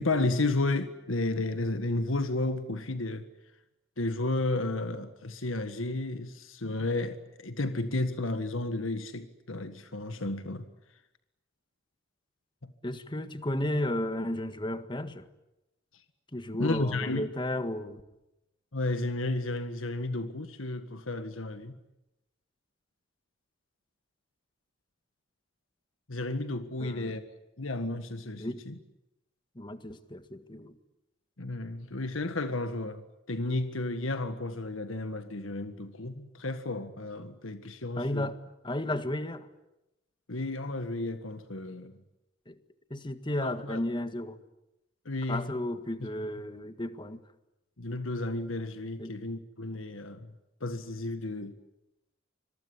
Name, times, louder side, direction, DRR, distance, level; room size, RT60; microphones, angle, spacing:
voice 1, 0.0-3.3 4.0-10.6 16.6-17.3 18.7-21.7 26.1-27.2 27.6-28.7 31.4-33.0 33.3-38.3 40.3-42.0 43.4-43.8 45.0-45.5 47.8-50.3 50.6-51.5, left 2 dB, 85° left, 1.7 m, -32 dB
voice 2, 12.8-15.3 16.3-18.0 26.8-27.2 28.4-28.6 29.5-30.8 37.9-39.5 42.5-42.6 42.9-44.4 45.3-47.2 49.0-49.2, left 1 dB, 25° left, 1.7 m, -33 dB
26.0 x 23.0 x 9.9 m
head